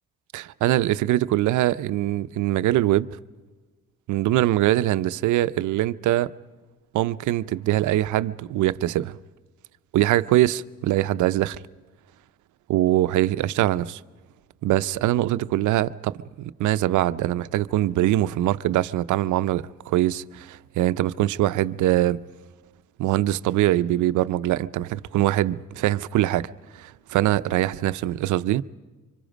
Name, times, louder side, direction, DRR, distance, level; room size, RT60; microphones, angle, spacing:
voice 1, 0.3-3.1 4.1-6.3 6.9-9.2 9.9-11.6 12.7-14.0 14.6-22.2 23.0-28.6, right 14 dB, 80° right, 0.6 m, -23 dB
26.0 x 24.0 x 5.1 m
cardioid pair, 90°, 30 cm